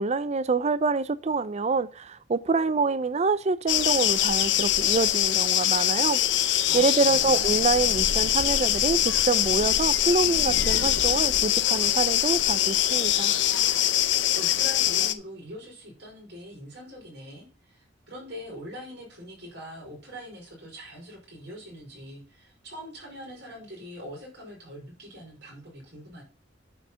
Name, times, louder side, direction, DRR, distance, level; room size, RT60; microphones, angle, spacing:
voice 1, 0.0-6.2 6.7-13.4, right 4 dB, 35° right, 0.5 m, -26 dB
sound 1, 3.7-15.1, left 12 dB, 80° left, 0.7 m, -23 dB
voice 2, 6.7-7.6 14.3-26.2, equal, 65° right, 5.3 m, -43 dB
9.2 x 5.0 x 5.7 m
head